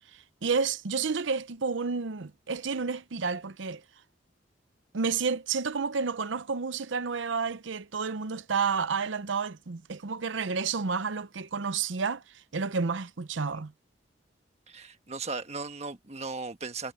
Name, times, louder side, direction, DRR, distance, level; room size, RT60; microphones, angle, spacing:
voice 1, 0.4-3.8 4.9-13.7, right 5 dB, 90° right, 0.7 m, -30 dB
voice 2, 14.7-16.9, right 4 dB, 35° right, 1.4 m, -37 dB
head